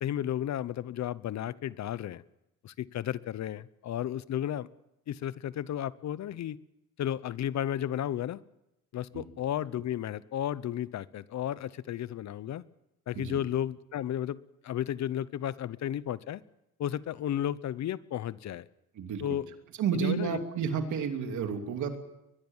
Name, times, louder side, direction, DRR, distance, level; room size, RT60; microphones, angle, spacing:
voice 1, 0.0-2.2 2.6-4.7 5.1-6.6 7.0-8.4 8.9-12.6 13.1-14.4 14.6-16.4 16.8-18.7 19.2-19.4 19.9-20.4, left 11 dB, 65° left, 18 dB, 0.9 m, -33 dB
voice 2, 19.8-22.0, right 7 dB, 75° right, 5 dB, 3.0 m, -31 dB
22.0 x 21.5 x 7.3 m, 0.89 s
cardioid pair, 90°, 30 cm